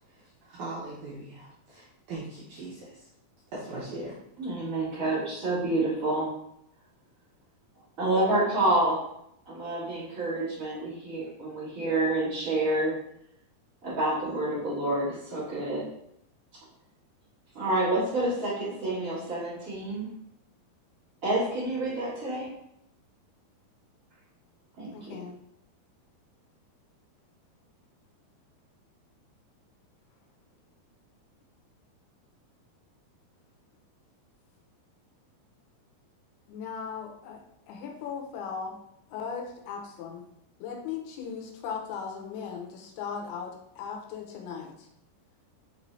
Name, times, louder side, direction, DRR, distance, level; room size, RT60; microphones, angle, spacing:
voice 1, 0.1-3.1 3.5-4.2, right 2 dB, 80° right, -6 dB, 1.8 m, -40 dB
voice 2, 4.4-6.3 8.0-9.0 9.4-12.9 13.8-15.8 17.5-20.1 21.2-22.5 24.8-25.2, right 2 dB, 55° right, -11 dB, 0.8 m, -28 dB
voice 3, 24.9-25.4 36.5-37.4 37.7-38.7 39.1-40.2 40.6-44.7, left 6 dB, 90° left, 1 dB, 2.7 m, -37 dB
5.9 x 2.6 x 3.2 m, 0.76 s
omnidirectional pair, 4.5 m